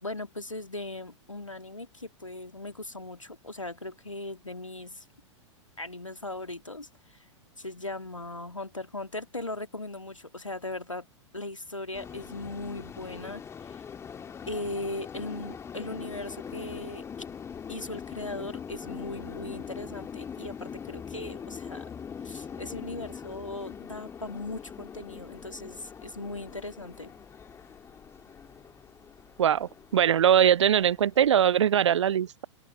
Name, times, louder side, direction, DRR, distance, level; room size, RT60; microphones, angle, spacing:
voice 1, 0.0-5.1 5.8-7.3 7.6-11.1 11.3-13.8 14.5-17.0 17.7-21.9 22.2-27.1, left 2 dB, 85° left, 2.3 m, -38 dB
sound 1, 11.9-31.5, left 7 dB, 15° left, 2.0 m, -42 dB
voice 2, 29.4-32.4, right 9 dB, 65° right, 0.4 m, -22 dB
open air
figure-of-eight pair, 100°, 16 cm